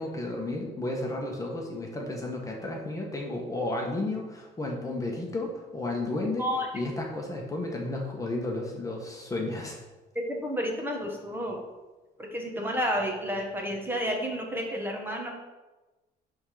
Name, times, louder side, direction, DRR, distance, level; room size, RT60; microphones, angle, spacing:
voice 1, 0.0-6.5 6.7-9.8, left 2 dB, 20° left, -1 dB, 1.5 m, -32 dB
voice 2, 10.2-11.6 12.2-15.3, equal, 10° right, 0 dB, 1.6 m, -31 dB
11.0 x 3.9 x 5.0 m, 1.2 s
cardioid pair, 110°, 17 cm